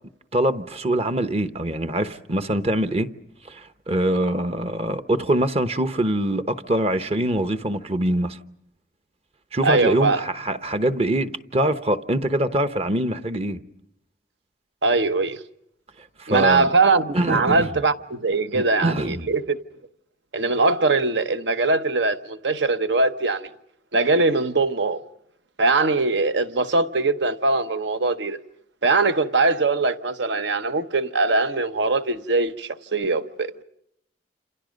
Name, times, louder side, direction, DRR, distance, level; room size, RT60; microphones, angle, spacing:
voice 1, 0.3-3.1 3.5-8.4 9.5-13.6 16.2-16.7 17.1-17.7 18.5-19.3, right 1 dB, 30° right, 0.9 m, -24 dB
voice 2, 9.6-10.2 14.8-15.4 16.3-19.6 20.3-23.5 23.9-25.0 25.6-28.4 28.8-33.6, right 3 dB, 65° right, 1.0 m, -21 dB
28.5 x 28.0 x 5.2 m
head